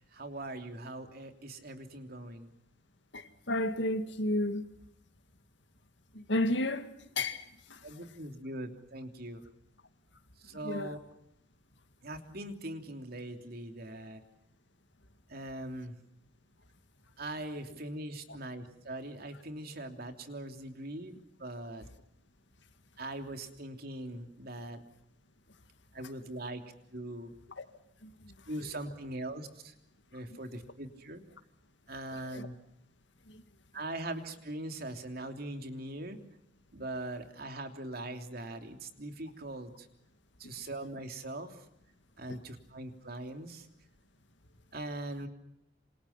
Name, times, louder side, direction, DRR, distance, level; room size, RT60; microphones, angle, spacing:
voice 1, 0.1-2.5 7.8-9.4 10.4-11.0 12.0-14.2 15.3-16.0 17.2-21.9 23.0-24.8 25.9-26.6 26.9-27.3 28.5-29.7 30.1-31.2 31.9-32.5 33.7-36.2 36.7-39.9 40.4-41.6 42.2-43.7 44.7-45.3, right 1 dB, 50° right, 3.1 m, -41 dB
voice 2, 3.1-4.6 6.3-6.9 7.2-7.4 10.6-10.9 27.6-27.7 32.3-32.5 42.3-42.4, left 1 dB, 65° left, 2.1 m, -31 dB
27.5 x 27.5 x 5.9 m
head